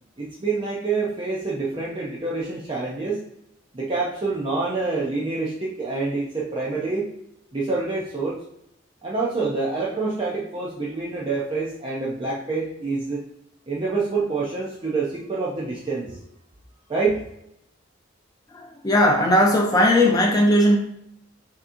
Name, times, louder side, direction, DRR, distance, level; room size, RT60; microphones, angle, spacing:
voice 1, 0.2-3.2 3.7-7.1 7.5-8.4 9.0-13.2 13.7-16.2 16.9-17.3, right 3 dB, 25° right, -5 dB, 0.5 m, -27 dB
voice 2, 18.5-20.8, left 1 dB, 20° left, 0 dB, 0.6 m, -18 dB
5.8 x 2.8 x 2.6 m, 0.78 s
head